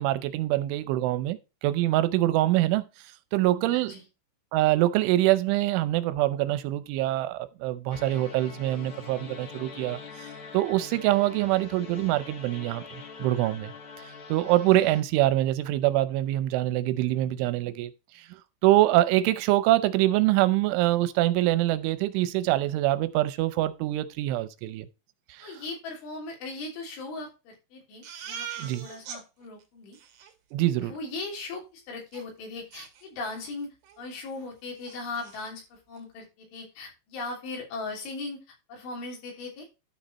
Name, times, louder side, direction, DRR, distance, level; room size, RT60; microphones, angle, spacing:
voice 1, 0.0-2.8 3.3-3.9 4.5-10.0 10.5-12.8 13.2-13.7 14.3-17.9 18.3-24.9 25.3-25.6 28.6-28.9 30.5-30.9, right 15 dB, 85° right, 3.1 m, -24 dB
voice 2, 3.7-4.0 25.4-30.0 30.7-33.7 34.0-38.4 38.7-39.7, left 3 dB, 75° left, 5.6 m, -38 dB
sound 1, 7.9-15.0, left 5 dB, 50° left, 2.4 m, -44 dB
Crying sobbing, 28.0-29.2 29.6-29.7 29.9-30.3 32.1-32.2 32.7-33.5 33.8-34.0 34.4-34.5 34.8-35.5, right 8 dB, 60° right, 2.8 m, -41 dB
12.0 x 5.3 x 4.1 m
omnidirectional pair, 5.6 m